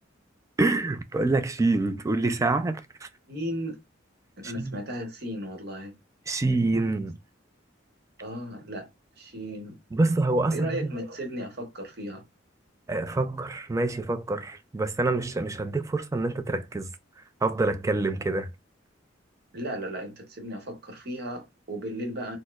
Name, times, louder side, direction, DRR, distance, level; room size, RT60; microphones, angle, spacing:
voice 1, 0.6-3.1 4.4-4.8 6.3-7.2 9.9-10.9 12.9-16.9 17.4-18.5, right 2 dB, 15° right, 0.3 m, -26 dB
voice 2, 3.3-3.8 4.4-5.9 8.2-8.9 9.2-9.7 10.5-12.2 19.5-22.4, equal, 55° right, 1.0 m, -35 dB
4.1 x 2.0 x 2.3 m
head